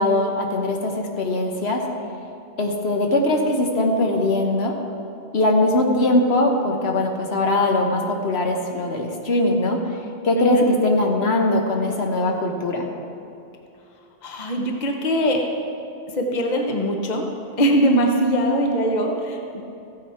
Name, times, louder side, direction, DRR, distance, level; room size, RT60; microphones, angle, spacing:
voice 1, 0.0-1.8 2.6-4.8 5.3-9.8 10.2-12.9, left 2 dB, 70° left, 1 dB, 1.3 m, -21 dB
voice 2, 14.2-15.4 16.1-17.2 17.6-19.6, right 1 dB, 45° left, 2 dB, 1.1 m, -21 dB
14.5 x 9.0 x 4.3 m, 2.6 s
omnidirectional pair, 1.1 m